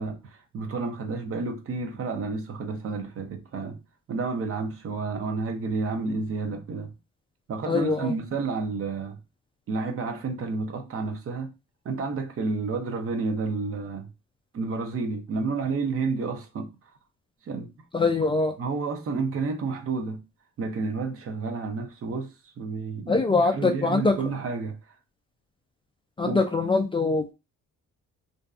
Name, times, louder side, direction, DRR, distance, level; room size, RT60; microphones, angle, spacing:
voice 1, 0.0-3.8 4.1-6.9 7.5-9.2 9.7-11.5 11.8-14.1 14.5-16.7 17.5-17.7 18.6-20.2 20.6-24.8 26.2-26.4, right 4 dB, 50° right, 0.6 m, -30 dB
voice 2, 7.7-8.1 17.9-18.5 23.1-24.1 26.2-27.3, left 3 dB, 20° left, 0.3 m, -23 dB
2.6 x 2.3 x 2.3 m
cardioid pair, 90°, 30 cm